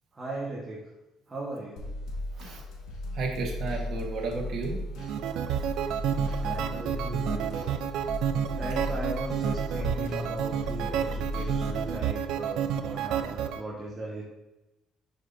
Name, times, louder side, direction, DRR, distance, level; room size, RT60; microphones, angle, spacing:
voice 1, 0.1-0.8 1.3-1.9 6.3-7.8 8.5-14.2, right 1 dB, 20° right, -4 dB, 1.4 m, -37 dB
sound 1, 1.8-12.0, left 1 dB, 75° left, 1.6 m, -36 dB
voice 2, 3.1-4.8 5.6-5.7, right 3 dB, 55° right, -1 dB, 1.3 m, -33 dB
sound 2, 5.0-13.6, right 9 dB, 75° right, 0.4 m, -30 dB
7.4 x 5.6 x 2.7 m, 0.97 s
cardioid pair, 120°, 0 cm